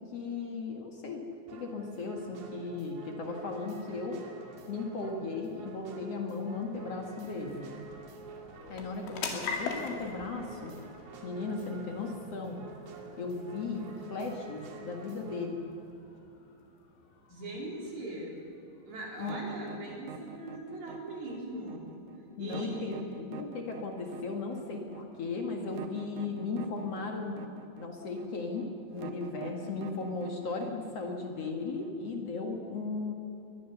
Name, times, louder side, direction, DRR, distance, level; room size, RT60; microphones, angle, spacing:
voice 1, 0.1-1.2 1.5-4.2 4.7-7.8 8.7-10.7 11.2-12.7 13.2-15.6 19.2-19.4 22.4-27.4 27.8-33.1, left 3 dB, 55° left, 2 dB, 1.8 m, -36 dB
sound 1, 1.5-15.5, right 3 dB, 65° right, 4.2 m, -48 dB
sound 2, 5.8-20.6, left 5 dB, 90° left, 4.7 m, -45 dB
voice 2, 17.3-18.4 18.8-21.9 22.4-23.0, right 1 dB, 40° right, -3 dB, 5.2 m, -40 dB
sound 3, 19.2-32.1, right 7 dB, 90° right, 1.7 m, -46 dB
23.0 x 20.0 x 6.9 m, 2.8 s
omnidirectional pair, 5.3 m